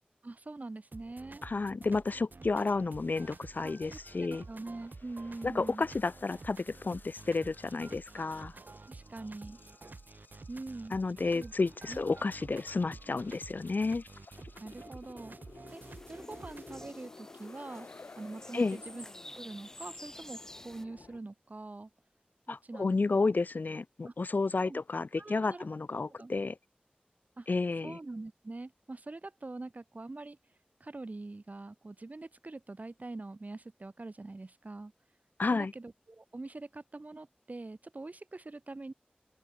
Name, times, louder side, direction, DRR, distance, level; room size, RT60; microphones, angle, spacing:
voice 1, 0.2-1.4 3.6-5.9 8.9-9.6 10.5-11.0 11.3-11.5 11.9-12.1 14.6-15.4 15.7-15.8 16.1-17.9 18.2-19.0 19.3-21.9 22.5-23.3 24.0-24.1 24.6-24.8 25.2-25.7 26.2-26.3 27.4-27.5 27.8-30.4 30.8-34.9 35.5-38.9, right 2 dB, 55° right, 3.3 m, -44 dB
sound 1, 0.9-16.9, right 3 dB, 70° right, 5.5 m, -50 dB
voice 2, 1.4-4.4 5.4-8.5 10.9-14.0 18.5-18.8 22.5-26.6 27.5-28.0 35.4-35.7, left 3 dB, 70° left, 0.5 m, -31 dB
sound 2, 2.9-21.2, left 3 dB, 85° left, 4.8 m, -55 dB
sound 3, 15.7-20.8, left 1 dB, 15° left, 2.4 m, -51 dB
wide cardioid pair, 60°, 3 cm